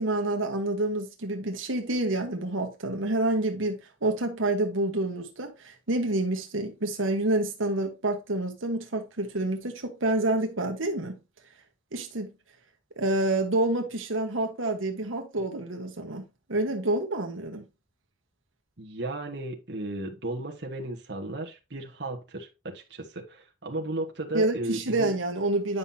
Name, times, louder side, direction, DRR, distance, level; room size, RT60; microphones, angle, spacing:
voice 1, 0.0-11.2 11.9-12.3 13.0-16.2 16.5-17.6 24.3-25.8, right 2 dB, 85° right, 1.3 m, -28 dB
voice 2, 18.8-25.1, right 2 dB, 60° right, 1.4 m, -35 dB
9.5 x 5.6 x 2.8 m
head